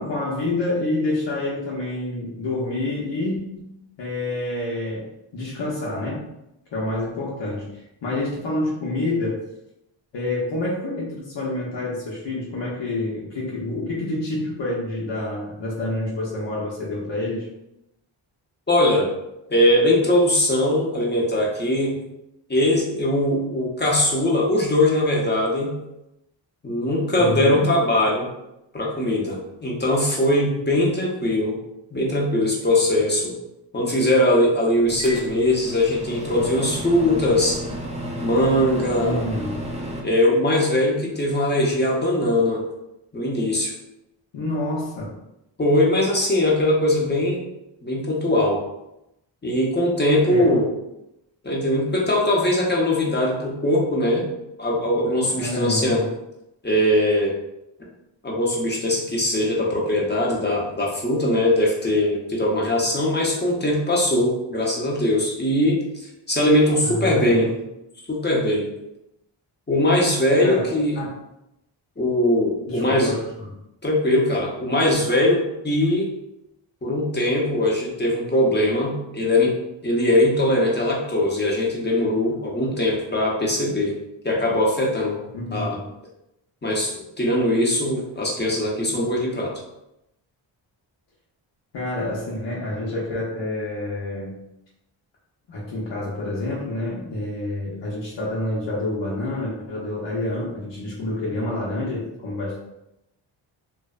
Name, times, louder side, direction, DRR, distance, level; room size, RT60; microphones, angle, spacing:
voice 1, 0.0-3.7 4.0-6.3 6.7-7.7 8.0-9.4 10.1-17.5 27.2-27.7 39.0-39.7 44.3-45.1 50.3-50.6 55.3-56.1 66.8-67.5 70.4-71.1 72.7-73.5 85.3-85.9 91.7-94.4 95.5-102.6, left 2 dB, 60° left, -6 dB, 0.8 m, -28 dB
voice 2, 18.7-19.1 19.5-21.9 22.5-25.8 26.6-28.3 28.7-31.6 31.9-33.3 33.7-37.6 38.2-39.2 40.0-42.6 43.1-43.7 45.6-47.4 47.8-48.6 49.4-50.7 51.4-54.3 54.6-56.0 56.6-57.3 58.2-65.8 66.3-67.5 68.1-68.7 69.7-71.0 72.0-73.1 73.8-76.1 76.8-79.6 79.8-84.0 84.2-85.2 85.5-85.8 86.6-89.6, left 1 dB, 20° left, -3 dB, 0.7 m, -21 dB
Microwave oven, 34.9-40.0, equal, 15° right, 0.4 m, -32 dB
2.6 x 2.1 x 2.4 m, 0.87 s
cardioid pair, 50°, 49 cm